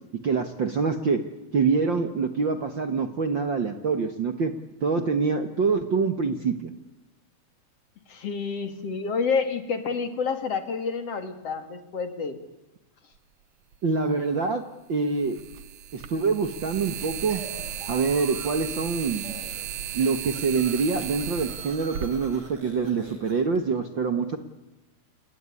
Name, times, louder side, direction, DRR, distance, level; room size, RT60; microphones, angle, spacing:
voice 1, 0.2-1.2 1.5-4.5 4.8-6.7 13.8-15.4 15.9-17.4 17.9-19.2 19.9-24.4, right 4 dB, 50° right, 9 dB, 1.7 m, -25 dB
voice 2, 8.1-12.4, left 5 dB, 50° left, 9 dB, 3.3 m, -29 dB
sound 1, 13.7-13.8 15.2-23.1, right 10 dB, 65° right, 2.3 m, -36 dB
sound 2, 17.3-18.8 19.1-19.7 20.0-23.6, right 3 dB, 30° right, 5.7 m, -46 dB
28.0 x 20.5 x 9.8 m, 1.0 s
omnidirectional pair, 3.6 m